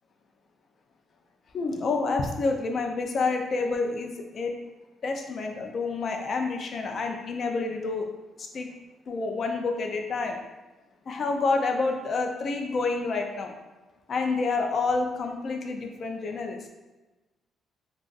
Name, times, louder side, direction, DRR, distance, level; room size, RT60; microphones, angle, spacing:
voice 1, 1.5-4.5 5.0-8.1 8.4-8.7 9.1-10.4 11.1-13.5 14.1-16.6, left 3 dB, 55° left, 3 dB, 0.4 m, -28 dB
2.5 x 2.4 x 3.9 m, 1.1 s
cardioid pair, 90°, 0 cm